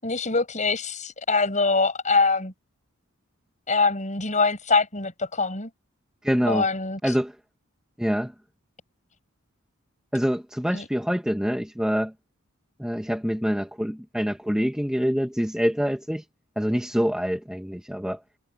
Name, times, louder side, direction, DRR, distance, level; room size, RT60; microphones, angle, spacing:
voice 1, 0.0-2.5 3.7-5.7 6.5-7.1 10.7-10.8, left 4 dB, 35° left, 6.1 m, -24 dB
voice 2, 6.2-6.6 7.0-7.3 8.0-8.3 10.1-12.1 12.8-16.2 16.6-18.2, equal, 5° right, 1.0 m, -25 dB
head